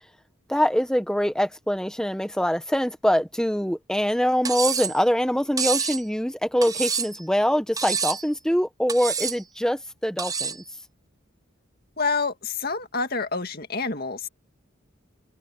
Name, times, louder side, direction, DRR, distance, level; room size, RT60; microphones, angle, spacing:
voice 1, 0.5-10.6, equal, 5° left, 1.3 m, -24 dB
Cutlery silverware, 4.4-5.0 5.6-6.0 6.6-7.2 7.8-8.3 8.9-9.4 10.2-10.6, right 6 dB, 20° right, 0.8 m, -27 dB
voice 2, 12.0-14.3, left 4 dB, 50° left, 2.1 m, -27 dB
head